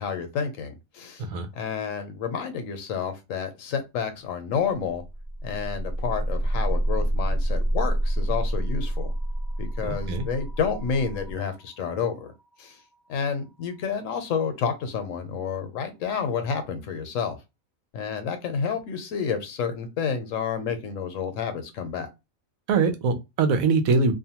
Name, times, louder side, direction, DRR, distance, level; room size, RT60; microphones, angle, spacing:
voice 1, 0.0-1.3 1.5-5.0 5.4-9.1 9.6-12.3 12.6-12.8 13.1-17.4 17.9-22.1, left 6 dB, 70° left, 1.0 m, -30 dB
sound 1, 4.9-14.7, right 1 dB, 45° left, 0.5 m, -29 dB
voice 2, 9.8-10.2 22.7-24.1, right 4 dB, 85° right, 1.1 m, -23 dB
2.6 x 2.2 x 2.8 m
omnidirectional pair, 1.4 m